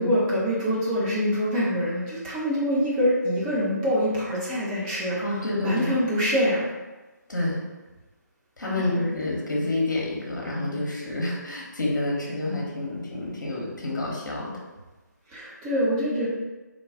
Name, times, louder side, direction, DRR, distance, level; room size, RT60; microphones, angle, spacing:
voice 1, 0.0-5.2 5.6-6.6 8.8-8.9 15.3-16.3, equal, 15° right, -8 dB, 1.0 m, -25 dB
voice 2, 5.2-6.0 7.3-7.6 8.6-14.6, left 2 dB, 70° left, -3 dB, 1.1 m, -28 dB
3.8 x 2.4 x 3.6 m, 1.2 s
figure-of-eight pair, 150°, 10 cm